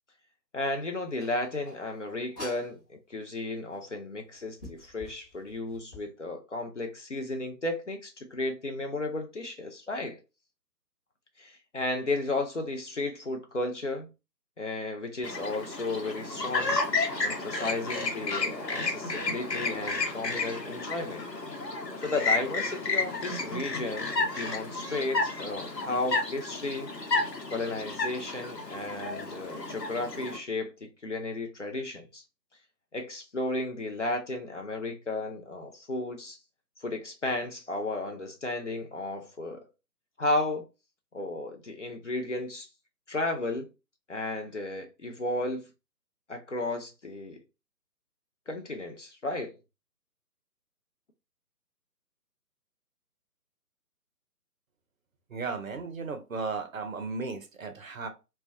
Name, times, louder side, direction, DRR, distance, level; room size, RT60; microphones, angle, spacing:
voice 1, 0.5-10.2 11.4-14.1 14.6-16.8 17.2-21.3 22.0-26.9 27.5-32.2 32.9-36.4 36.8-39.6 40.2-40.6 41.1-42.7 43.1-43.7 44.1-45.7 46.3-47.4 48.5-49.6, left 2 dB, 50° left, 0.4 m, -34 dB
sound 1, 1.2-2.8 3.7-3.8 4.3-6.1, left 1 dB, 25° left, 0.9 m, -46 dB
Chirp tweet, 15.2-30.4, left 3 dB, 80° left, 0.8 m, -32 dB
voice 2, 55.3-58.1, right 4 dB, 55° right, 0.5 m, -35 dB
2.2 x 2.2 x 2.5 m
figure-of-eight pair, 145°, 49 cm